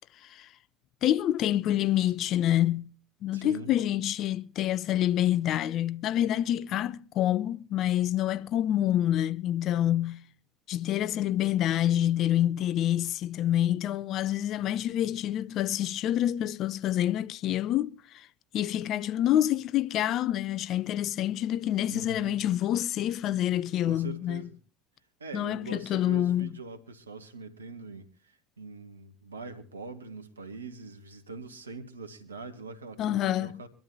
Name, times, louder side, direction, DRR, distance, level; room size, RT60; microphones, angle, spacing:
voice 1, 1.0-2.9 3.2-10.2 10.7-18.3 18.5-24.4 25.3-26.5 33.0-33.6, left 12 dB, 50° left, 0.6 m, -27 dB
voice 2, 3.3-3.7 21.9-22.4 23.8-24.5 25.2-33.7, right 3 dB, 90° right, 1.7 m, -43 dB
24.0 x 12.5 x 2.7 m
hypercardioid pair, 70°, 0 cm